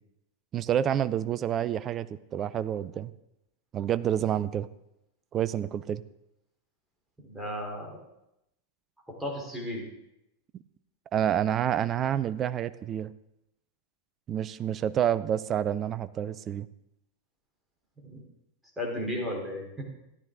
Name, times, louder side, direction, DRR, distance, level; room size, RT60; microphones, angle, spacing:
voice 1, 0.5-3.1 3.7-4.7 5.3-6.0 11.1-13.1 14.3-16.7, right 10 dB, 30° right, 15 dB, 0.5 m, -28 dB
voice 2, 7.2-8.0 9.2-9.8 18.0-18.2 18.8-19.8, left 1 dB, 5° right, -2 dB, 3.8 m, -34 dB
15.0 x 11.0 x 3.8 m, 0.86 s
figure-of-eight pair, 90°, 0 cm